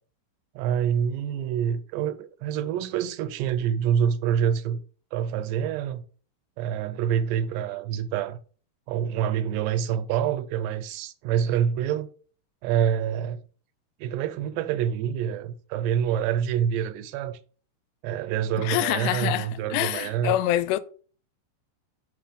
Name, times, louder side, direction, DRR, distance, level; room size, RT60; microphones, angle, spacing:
voice 1, 0.6-4.8 5.1-6.0 6.6-8.4 8.9-12.1 12.6-13.4 14.0-17.4 18.0-20.4, right 9 dB, 85° right, 2.8 m, -26 dB
voice 2, 18.6-20.8, left 14 dB, 85° left, 2.7 m, -26 dB
6.3 x 5.8 x 5.1 m
omnidirectional pair, 4.8 m